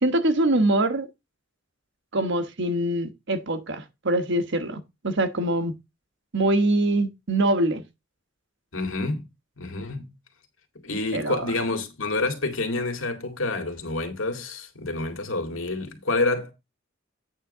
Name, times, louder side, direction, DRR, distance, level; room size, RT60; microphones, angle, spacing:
voice 1, 0.0-1.1 2.1-5.7 6.3-7.8 10.9-11.5, right 1 dB, 65° right, 1.2 m, -24 dB
voice 2, 8.7-9.2 9.6-10.1 10.8-16.5, left 2 dB, 75° left, 2.1 m, -28 dB
8.9 x 3.7 x 6.6 m
head